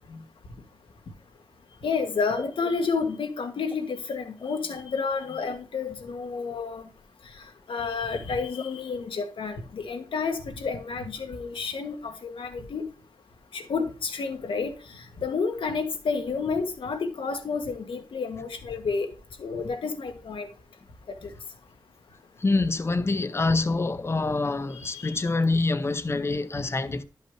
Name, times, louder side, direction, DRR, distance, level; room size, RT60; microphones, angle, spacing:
voice 1, 1.8-6.9 7.7-12.8 13.5-19.1 19.4-20.5 21.2-21.3 24.7-25.2, left 5 dB, 90° left, 1.4 m, -30 dB
voice 2, 22.4-27.0, left 3 dB, 30° left, 0.6 m, -26 dB
11.5 x 5.6 x 3.1 m
wide cardioid pair, 100°, 9 cm